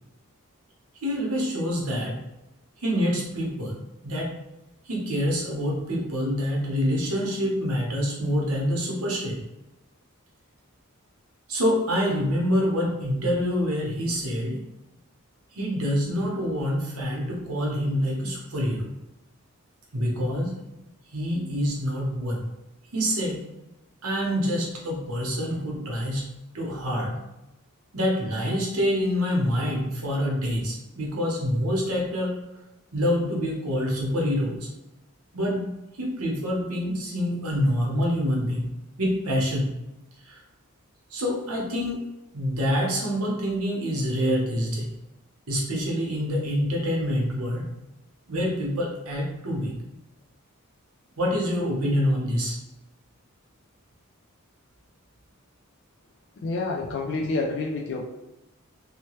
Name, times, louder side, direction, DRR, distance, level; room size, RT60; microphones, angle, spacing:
voice 1, 1.0-2.2 2.8-4.3 4.8-9.4 11.5-14.6 15.5-18.9 19.9-20.5 21.1-22.4 22.9-23.4 24.0-26.2 26.5-27.2 27.9-32.3 32.9-34.7 35.3-38.7 39.0-39.8 40.2-40.4 41.1-42.0 42.3-44.9 45.5-47.7 48.3-49.8 51.2-52.6, equal, 80° right, -2 dB, 0.9 m, -26 dB
voice 2, 56.4-58.1, left 3 dB, 55° left, 0 dB, 0.3 m, -28 dB
2.8 x 2.2 x 3.0 m, 0.93 s
head